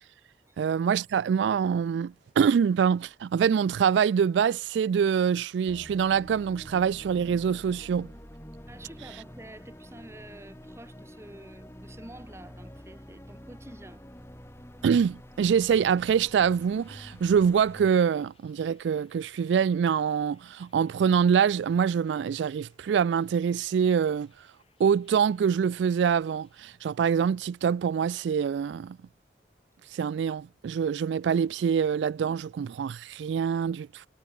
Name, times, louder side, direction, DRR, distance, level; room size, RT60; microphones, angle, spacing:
voice 1, 0.6-8.1 14.8-24.3 24.8-29.0 29.9-34.1, right 7 dB, 80° right, 0.3 m, -25 dB
sound 1, 5.7-17.9, equal, 15° left, 3.1 m, -47 dB
voice 2, 8.7-14.0, right 1 dB, 15° right, 1.5 m, -48 dB
sound 2, 15.8-26.7, left 6 dB, 30° left, 7.6 m, -69 dB
head